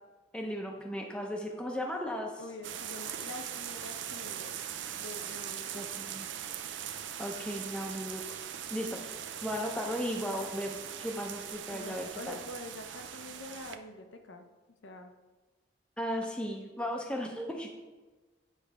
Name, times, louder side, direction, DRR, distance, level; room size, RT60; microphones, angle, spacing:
voice 1, 0.3-2.4 5.7-6.3 7.2-8.2 8.7-9.0 9.4-12.4 16.0-17.7, equal, 5° left, 1 dB, 0.6 m, -36 dB
voice 2, 2.4-4.6 4.9-5.9 11.7-14.5 14.8-15.1, left 2 dB, 75° left, 5 dB, 0.7 m, -45 dB
sound 1, 2.6-13.8, right 9 dB, 75° right, 0.5 m, -41 dB
9.1 x 3.3 x 4.7 m, 1.2 s
head